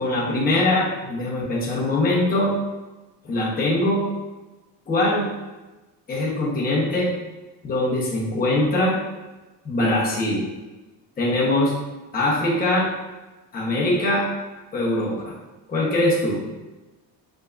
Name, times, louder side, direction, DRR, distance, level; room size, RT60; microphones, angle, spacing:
voice 1, 0.0-2.5 3.2-4.0 4.9-5.3 6.1-7.1 7.6-9.0 9.6-10.5 11.2-11.7 12.1-12.9 13.5-14.3 14.7-15.4 15.7-16.4, left 1 dB, 20° left, -5 dB, 1.0 m, -22 dB
5.5 x 3.7 x 2.5 m, 1.1 s
cardioid pair, 165°, 41 cm